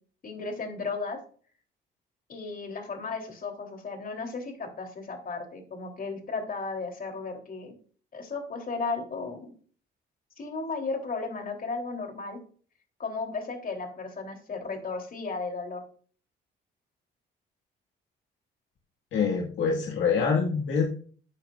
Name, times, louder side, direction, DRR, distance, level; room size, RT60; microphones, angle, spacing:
voice 1, 0.2-1.2 2.3-7.7 8.1-9.5 10.4-12.4 13.0-15.8, left 4 dB, 45° left, 3 dB, 3.5 m, -35 dB
voice 2, 19.1-20.8, left 5 dB, 70° left, -1 dB, 2.0 m, -25 dB
13.5 x 9.1 x 2.5 m, 0.43 s
cardioid pair, 90°, 20 cm